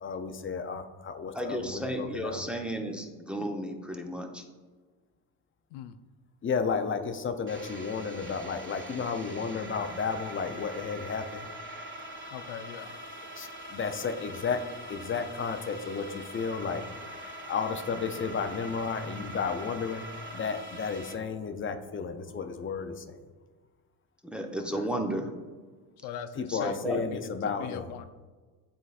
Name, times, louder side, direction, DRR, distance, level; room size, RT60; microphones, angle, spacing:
voice 1, 0.0-2.4 6.4-11.5 13.4-14.6 14.9-16.8 17.5-20.1 20.3-23.2 26.4-27.9, left 5 dB, 25° left, 8 dB, 0.6 m, -33 dB
voice 2, 1.3-4.4 24.3-25.3 26.5-27.0, right 1 dB, ahead, 3 dB, 0.7 m, -33 dB
sound 1, 7.5-21.1, right 1 dB, 25° right, 1.5 m, -43 dB
voice 3, 12.3-12.9 24.7-24.9 26.0-26.8 27.1-27.2 27.6-28.1, left 9 dB, 80° left, 10 dB, 0.6 m, -40 dB
10.0 x 3.9 x 2.5 m, 1.4 s
supercardioid pair, 80°, 47 cm